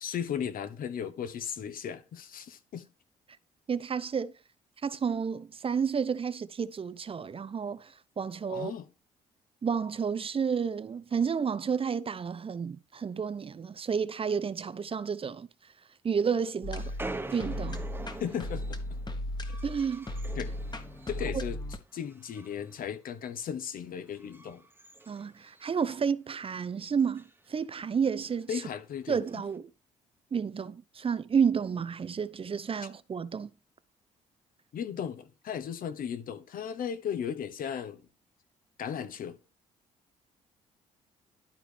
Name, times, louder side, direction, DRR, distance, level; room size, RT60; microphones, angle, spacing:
voice 1, 0.0-2.9 8.5-8.9 18.2-18.8 20.4-20.5 21.1-21.6 21.9-24.6 28.5-29.4 34.7-38.1 38.8-39.4, left 8 dB, 60° left, 1.1 m, -36 dB
voice 2, 3.7-4.3 4.8-8.7 9.6-15.5 16.0-16.9 17.3-17.8 19.6-20.1 21.3-21.4 25.1-28.5 29.1-29.7 30.3-33.5, right 6 dB, 35° right, 0.6 m, -31 dB
sound 1, 16.6-21.8, left 1 dB, 25° left, 1.5 m, -36 dB
sound 2, 16.8-21.6 21.9-22.9 23.2-23.4 24.0-25.9 26.3-26.4 26.6-26.7 27.0-27.4 28.2-28.4 29.2-29.6, right 2 dB, 15° right, 1.1 m, -45 dB
12.0 x 4.7 x 3.4 m
hypercardioid pair, 50°, 16 cm